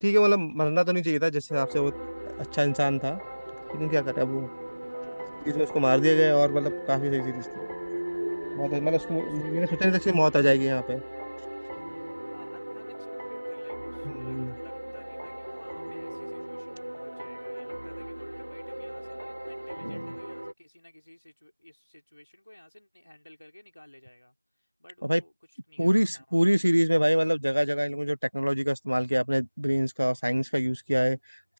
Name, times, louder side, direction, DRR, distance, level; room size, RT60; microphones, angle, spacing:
voice 1, 0.0-1.9 2.3-3.2 3.7-4.5 5.4-7.7 8.5-11.0 14.2-14.5 19.8-20.0 25.0-25.2 25.8-31.2, equal, 90° right, 0.4 m, -25 dB
sound 1, 1.4-9.5, right 6 dB, 5° right, 0.4 m, -55 dB
sound 2, 1.5-20.5, right 1 dB, 40° right, 2.8 m, -37 dB
voice 2, 4.9-5.4 7.2-7.7 8.9-10.5 12.3-26.6, left 1 dB, 30° left, 3.9 m, -54 dB
open air
figure-of-eight pair, 180°, 0 cm